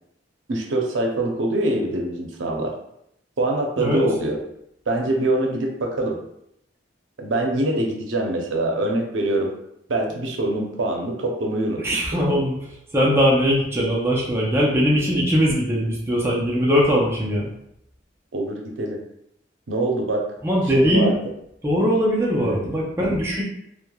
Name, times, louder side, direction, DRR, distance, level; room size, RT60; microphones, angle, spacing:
voice 1, 0.5-2.7 3.4-4.4 4.9-6.2 7.2-9.5 9.9-11.8 18.3-19.0 19.7-20.2 20.7-21.2 22.4-22.7, right 1 dB, 85° right, 1 dB, 0.6 m, -24 dB
voice 2, 11.8-12.6 12.9-17.5 20.4-21.1 21.6-23.4, equal, 15° right, -4 dB, 0.4 m, -20 dB
3.1 x 2.1 x 2.2 m, 0.77 s
head